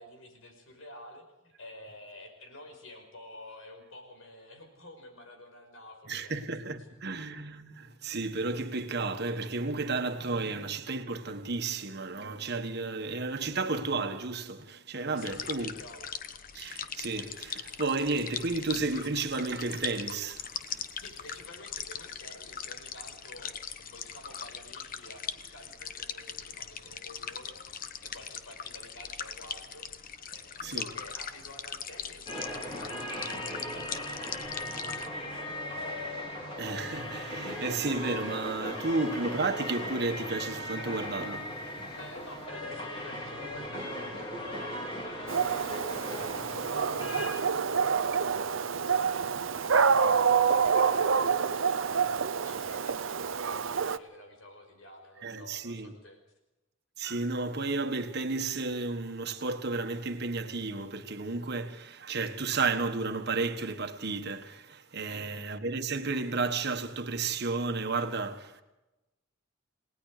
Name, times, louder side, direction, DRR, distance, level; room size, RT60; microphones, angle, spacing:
voice 1, 0.0-6.5 7.0-7.2 15.1-16.1 20.9-32.5 32.7-35.9 42.0-56.2 65.0-65.5, left 1 dB, 85° left, 5.6 m, -50 dB
voice 2, 6.1-15.7 16.5-20.5 30.6-30.9 36.6-41.6 55.2-55.9 57.0-68.6, right 3 dB, 55° right, 1.5 m, -32 dB
sound 1, 15.2-35.1, left 7 dB, 45° left, 1.1 m, -40 dB
sound 2, 32.3-47.3, left 1 dB, 25° left, 4.3 m, -38 dB
Dog, 45.3-54.0, right 6 dB, 70° right, 0.7 m, -27 dB
29.0 x 19.0 x 5.0 m
head